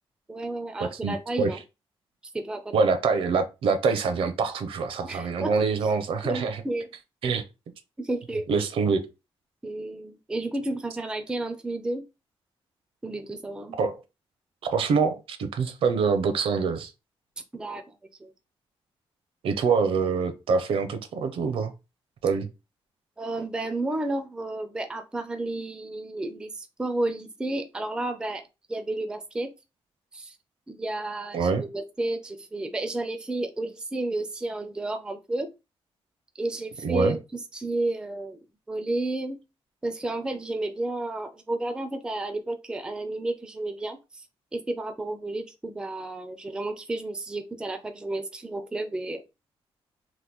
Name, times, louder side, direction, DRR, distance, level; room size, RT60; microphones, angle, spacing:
voice 1, 0.3-1.6 2.3-2.7 5.0-5.5 6.2-6.9 8.0-8.7 9.6-12.0 13.0-13.8 17.5-18.0 18.2-18.3 23.2-28.4 28.7-29.5 30.1-30.4 30.7-35.5 36.4-38.4 38.7-39.4 39.8-44.3 44.5-49.2, right 2 dB, 10° right, 0.4 m, -31 dB
voice 2, 0.8-1.5 2.7-6.6 7.2-7.4 8.5-9.0 13.8-14.0 14.6-16.9 19.4-21.7 22.2-22.5 31.3-31.6 36.8-37.2, right 5 dB, 70° right, 0.6 m, -25 dB
2.9 x 2.2 x 3.4 m
wide cardioid pair, 155°, 10 cm